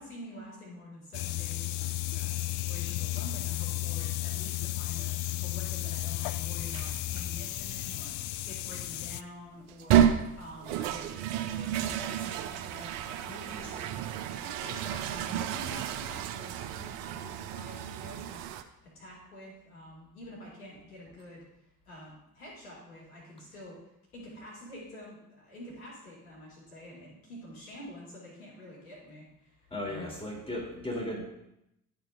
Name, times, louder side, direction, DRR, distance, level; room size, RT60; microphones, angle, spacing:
voice 1, 0.0-10.0 10.4-13.9 14.4-21.4 21.9-30.1, left 1 dB, 75° left, -5 dB, 2.7 m, -48 dB
sound 1, 1.1-9.2, left 15 dB, 55° left, 0.5 m, -33 dB
sound 2, 6.7-7.2 7.9-8.0 9.7-18.6, right 10 dB, 65° right, 0.7 m, -31 dB
voice 2, 29.7-31.2, left 1 dB, 10° left, -1 dB, 3.1 m, -35 dB
12.0 x 4.5 x 3.6 m, 0.84 s
figure-of-eight pair, 50°, 44 cm